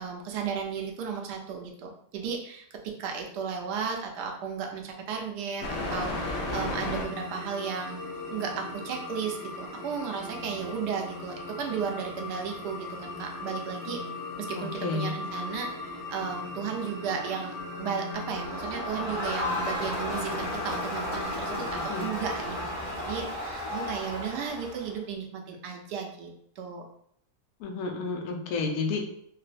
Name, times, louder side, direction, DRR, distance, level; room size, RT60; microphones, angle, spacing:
voice 1, 0.0-14.0 14.4-26.8, right 6 dB, 75° right, 2 dB, 1.1 m, -34 dB
sound 1, 5.6-22.6, left 2 dB, 90° left, 0.5 m, -37 dB
voice 2, 14.6-15.2 21.7-22.1 27.6-29.0, left 4 dB, 70° left, 2 dB, 1.0 m, -31 dB
Crowd, 18.1-25.0, left 1 dB, 30° left, 1.2 m, -34 dB
3.8 x 2.0 x 2.5 m, 0.68 s
omnidirectional pair, 1.9 m